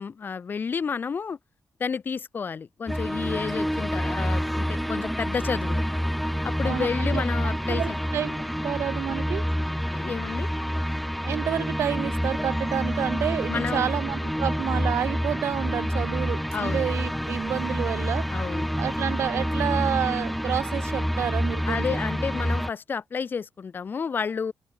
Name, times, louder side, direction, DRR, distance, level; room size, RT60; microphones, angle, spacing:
voice 1, 0.0-1.4 1.8-5.8 6.4-8.0 9.9-10.5 13.5-13.9 16.5-17.0 18.3-18.7 21.6-24.5, left 6 dB, 45° left, 4.7 m, -31 dB
sound 1, 2.9-22.7, equal, ahead, 0.7 m, -28 dB
voice 2, 6.6-7.2 7.7-9.4 11.2-18.3 18.8-22.0, right 10 dB, 80° right, 1.1 m, -29 dB
open air
cardioid pair, 105°, 5 cm